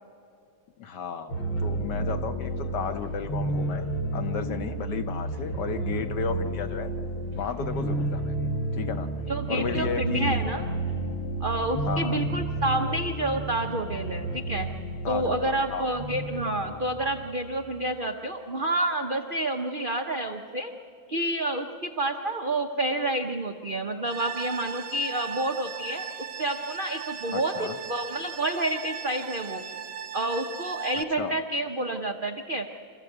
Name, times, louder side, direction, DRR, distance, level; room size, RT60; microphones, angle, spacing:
voice 1, 0.8-3.9 4.1-6.9 7.3-8.3 8.7-9.1 9.5-10.4 11.9-12.2 15.0-15.9 27.3-27.8 31.2-31.4, left 6 dB, 60° left, 9 dB, 1.4 m, -33 dB
sound 1, 1.3-17.6, right 2 dB, 85° left, 3.8 m, -31 dB
voice 2, 9.3-10.7 11.4-14.7 15.1-20.7 21.1-26.1 26.4-29.6 30.1-32.7, right 1 dB, 60° right, 4 dB, 0.5 m, -29 dB
sound 2, 24.1-31.0, right 7 dB, 85° right, 1.7 m, -37 dB
26.0 x 14.5 x 8.0 m, 2.5 s
omnidirectional pair, 2.3 m